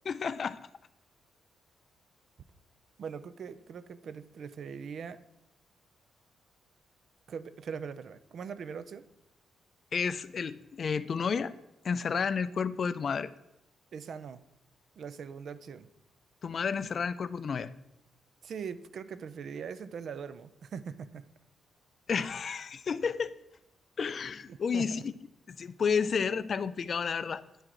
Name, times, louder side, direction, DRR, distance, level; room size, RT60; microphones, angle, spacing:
voice 1, 0.1-0.6 9.9-11.5 11.8-13.3 16.4-17.7 22.1-23.4 24.0-25.1 25.5-27.4, left 6 dB, 35° left, 15 dB, 0.3 m, -31 dB
voice 2, 3.0-5.2 7.3-9.0 13.9-14.4 15.0-15.9 18.4-21.2 24.5-25.0, right 6 dB, 50° right, 14 dB, 0.4 m, -41 dB
10.5 x 4.6 x 3.8 m, 0.89 s
wide cardioid pair, 175°, 0 cm